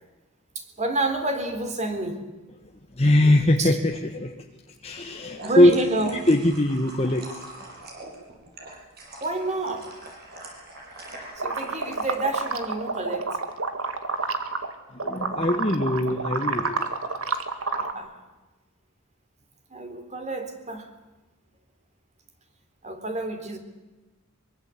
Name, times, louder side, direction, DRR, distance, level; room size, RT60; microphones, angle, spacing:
voice 1, 0.6-2.3 3.6-3.7 5.4-6.2 9.2-10.0 11.4-13.4 17.7-18.1 19.7-20.9 22.8-23.6, right 2 dB, 35° right, 7 dB, 3.6 m, -29 dB
voice 2, 2.9-4.5 4.8-5.7 6.3-7.5 14.9-17.0, left 1 dB, 30° left, 3 dB, 1.4 m, -21 dB
sound 1, 5.0-12.4, right 2 dB, 50° right, 7.2 m, -43 dB
sound 2, 11.4-14.7 15.0-17.9, right 4 dB, 75° right, 2.3 m, -29 dB
24.0 x 23.5 x 8.4 m, 1.1 s
head